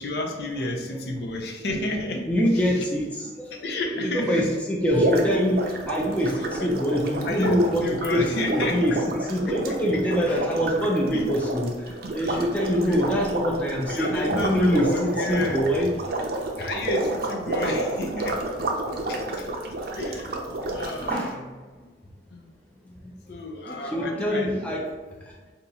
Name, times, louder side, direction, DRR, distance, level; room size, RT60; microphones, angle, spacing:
voice 1, 0.0-2.8 3.6-4.5 6.2-6.7 7.2-9.0 11.1-11.3 12.2-12.5 12.7-13.1 13.8-15.6 16.6-18.7 19.1-19.5 20.0-21.6 22.3-22.5 23.3-24.6, left 2 dB, 60° left, 1 dB, 0.5 m, -31 dB
voice 2, 2.3-3.5 4.3-4.4 4.7-6.3 6.6-7.8 8.1-8.2 8.5-8.9 9.3-15.9 18.9-19.3 21.0-21.4 22.8-23.1 23.7-24.8, equal, 10° left, -3 dB, 0.4 m, -24 dB
sound 1, 4.9-21.2, right 2 dB, 55° right, 0.5 m, -30 dB
2.8 x 2.3 x 3.9 m, 1.3 s
head